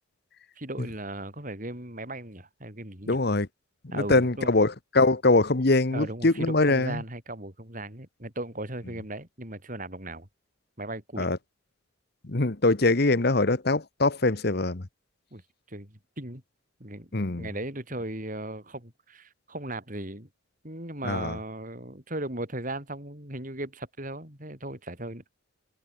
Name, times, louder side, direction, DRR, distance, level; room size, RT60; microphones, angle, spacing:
voice 1, 0.6-3.2 3.9-4.6 5.9-10.3 10.8-11.3 15.3-15.4 15.7-16.4 16.8-20.3 20.6-25.2, right 1 dB, 40° right, 5.4 m, -37 dB
voice 2, 3.1-3.5 3.9-7.0 11.2-11.4 12.2-14.8 17.1-17.5 21.0-21.4, left 2 dB, 50° left, 1.2 m, -23 dB
head